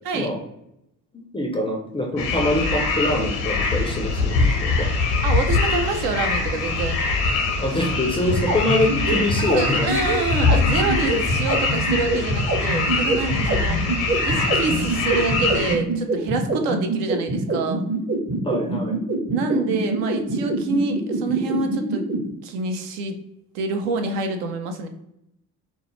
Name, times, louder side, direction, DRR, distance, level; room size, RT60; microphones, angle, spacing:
voice 1, 1.1-4.9 7.6-9.9 18.4-19.0, left 1 dB, 15° left, 1 dB, 0.3 m, -24 dB
sound 1, 2.2-15.7, left 3 dB, 80° left, 0.6 m, -23 dB
voice 2, 5.2-7.0 9.4-13.8 14.2-17.8 19.3-22.0 22.4-23.2 23.5-24.9, right 3 dB, 75° right, 5 dB, 0.5 m, -26 dB
sound 2, 8.1-22.2, right 2 dB, 35° right, 0.6 m, -24 dB
2.2 x 2.0 x 2.9 m, 0.80 s
hypercardioid pair, 45°, 47 cm